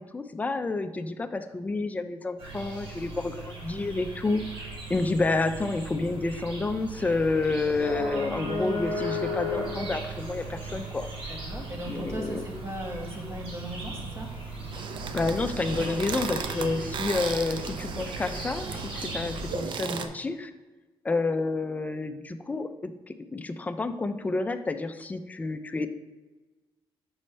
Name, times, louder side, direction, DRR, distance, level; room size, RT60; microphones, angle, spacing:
voice 1, 0.0-4.4 4.9-11.1 11.9-12.4 15.1-20.5 21.0-25.9, left 3 dB, 15° left, 8 dB, 0.4 m, -29 dB
sound 1, 2.4-19.6, equal, 85° right, 1.6 m, -37 dB
voice 2, 11.3-14.3, right 1 dB, 30° right, 1 dB, 1.2 m, -38 dB
sound 2, 14.7-20.1, right 5 dB, 60° right, 0.5 m, -35 dB
6.2 x 5.3 x 3.3 m, 1.2 s
cardioid pair, 125°, 9 cm